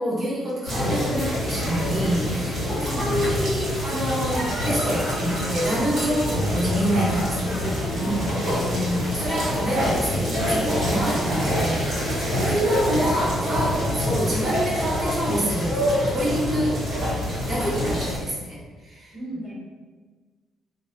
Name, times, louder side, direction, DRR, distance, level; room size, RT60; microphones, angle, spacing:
voice 1, 0.0-7.6 7.9-16.8 17.5-18.6 18.8-19.1, equal, 40° right, -6 dB, 0.9 m, -26 dB
sound 1, 0.6-18.2, equal, 60° right, 1.4 m, -26 dB
voice 2, 2.7-3.2 7.5-8.7 12.4-12.9 17.6-17.7 19.1-19.5, equal, 70° left, -6 dB, 0.9 m, -36 dB
2.4 x 2.0 x 2.5 m, 1.4 s
cardioid pair, 90°, 0 cm